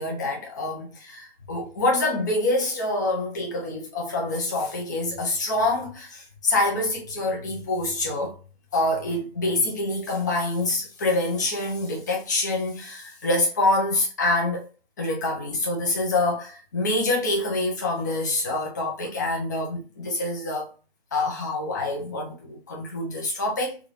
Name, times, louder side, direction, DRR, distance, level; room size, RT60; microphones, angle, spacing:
voice 1, 0.0-8.4 8.7-14.7 15.0-20.7 21.1-23.8, left 2 dB, 20° left, 0.6 m, -26 dB
3.5 x 2.6 x 3.0 m
hypercardioid pair, 165°, 30 cm